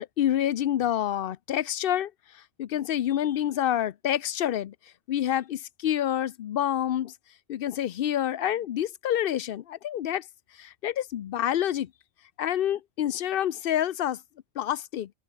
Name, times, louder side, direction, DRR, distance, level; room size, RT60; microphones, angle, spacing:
voice 1, 0.0-4.7 5.1-7.1 7.5-10.3 10.6-11.9 12.4-14.2 14.6-15.1, left 11 dB, 60° left, 0.7 m, -28 dB
open air
omnidirectional pair, 1.2 m